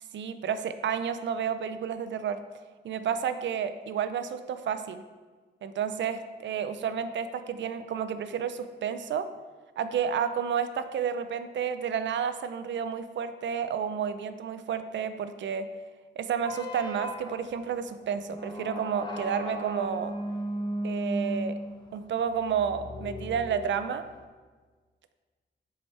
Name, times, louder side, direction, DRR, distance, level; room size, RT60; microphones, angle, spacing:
voice 1, 0.1-2.4 2.8-5.0 5.6-9.3 9.8-15.7 16.2-20.1 20.8-21.5 21.9-24.0, right 7 dB, 85° right, 11 dB, 0.4 m, -31 dB
sound 1, 16.4-24.2, right 1 dB, 25° left, 0.8 m, -36 dB
6.9 x 4.7 x 3.2 m, 1.4 s
cardioid pair, 90°, 19 cm